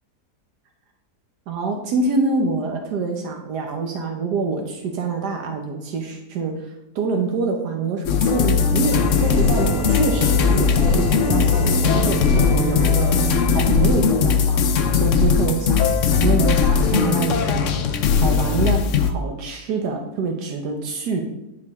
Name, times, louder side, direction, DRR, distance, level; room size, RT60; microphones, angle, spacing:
voice 1, 1.5-17.8 18.2-21.2, right 4 dB, 80° right, 3 dB, 1.4 m, -26 dB
sound 1, 8.0-19.1, left 6 dB, 60° left, 0.9 m, -19 dB
sound 2, 8.3-18.7, left 5 dB, 80° left, 1.4 m, -30 dB
sound 3, 8.8-13.9, right 3 dB, 50° right, 2.2 m, -28 dB
9.8 x 4.8 x 3.5 m, 0.93 s
omnidirectional pair, 1.7 m